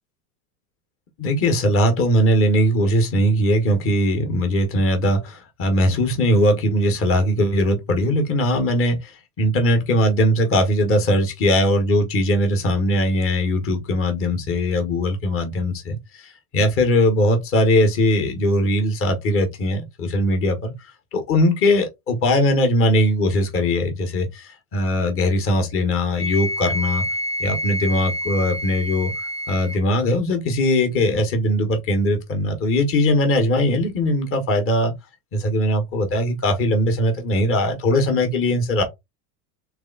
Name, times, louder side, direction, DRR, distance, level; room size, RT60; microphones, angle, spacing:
voice 1, 1.2-9.1 9.4-16.0 16.5-20.7 21.1-27.0 27.4-29.1 29.5-34.9 35.3-38.8, left 1 dB, 30° left, 1.4 m, -20 dB
Wind instrument woodwind instrument, 26.2-29.8, equal, 10° left, 0.6 m, -28 dB
3.4 x 3.4 x 3.9 m
supercardioid pair, 125°, 43 cm